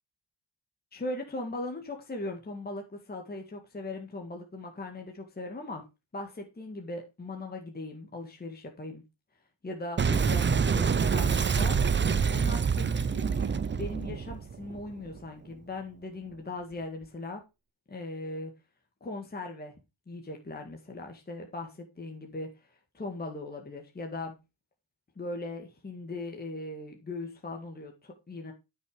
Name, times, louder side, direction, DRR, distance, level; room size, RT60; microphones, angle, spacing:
voice 1, 0.9-5.8 6.1-9.0 9.6-17.4 17.9-18.5 19.0-19.7 20.1-24.4 25.2-28.5, left 2 dB, 20° left, 2 dB, 1.8 m, -39 dB
Boom, 10.0-15.2, right 6 dB, 25° right, 0.6 m, -26 dB
14.0 x 6.1 x 4.9 m, 0.26 s
wide cardioid pair, 160°, 46 cm